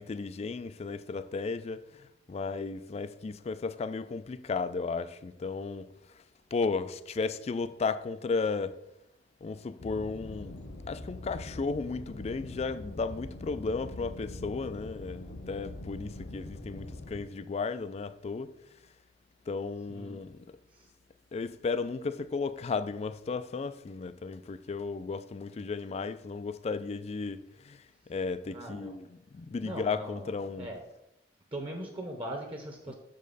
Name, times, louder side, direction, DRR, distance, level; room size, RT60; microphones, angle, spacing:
voice 1, 0.0-6.2 6.5-8.8 9.4-18.5 19.5-20.6 21.3-27.8 28.1-30.7 32.9-33.0, left 4 dB, 35° left, 0.3 m, -34 dB
sound 1, 9.8-17.2, left 2 dB, 85° left, 0.9 m, -43 dB
voice 2, 28.5-28.9 29.6-30.8 31.5-32.9, right 1 dB, 30° right, 0.9 m, -40 dB
6.5 x 5.2 x 4.0 m
head